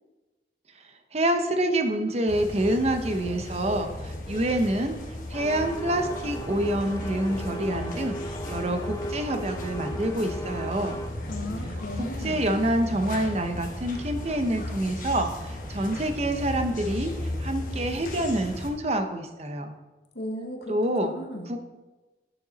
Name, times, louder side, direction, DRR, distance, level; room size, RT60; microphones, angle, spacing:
voice 1, 0.7-5.0 5.3-11.0 12.0-19.7 20.7-21.1 21.5-21.6, right 1 dB, 35° right, 6 dB, 0.7 m, -27 dB
sound 1, 2.3-18.7, left 1 dB, 45° left, 1.2 m, -36 dB
sound 2, 5.3-11.1, equal, 20° left, 0.5 m, -37 dB
voice 2, 11.3-12.4 20.1-21.5, left 1 dB, 65° left, 4 dB, 1.2 m, -36 dB
8.9 x 6.7 x 4.0 m, 1.2 s
head